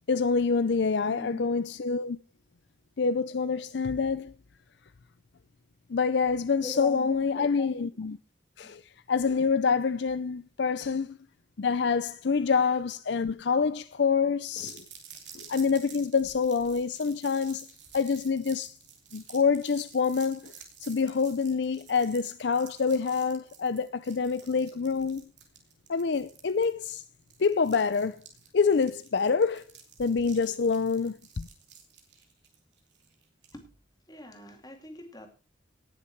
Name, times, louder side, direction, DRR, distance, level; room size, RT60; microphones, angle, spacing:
voice 1, 0.1-2.2 3.0-4.3 5.9-8.2 8.6-8.8 9.1-11.2 11.6-14.9 15.3-17.7 17.9-18.7 19.1-20.5 20.8-25.3 25.9-27.0 27.4-28.2 28.5-29.6 30.0-31.5, left 5 dB, 65° left, 0.5 m, -26 dB
voice 2, 1.1-1.4 6.6-7.9 33.5-33.7 34.1-35.3, left 1 dB, 20° left, 2.4 m, -42 dB
sound 1, 14.6-33.6, right 7 dB, 65° right, 3.0 m, -51 dB
18.5 x 6.7 x 4.6 m
head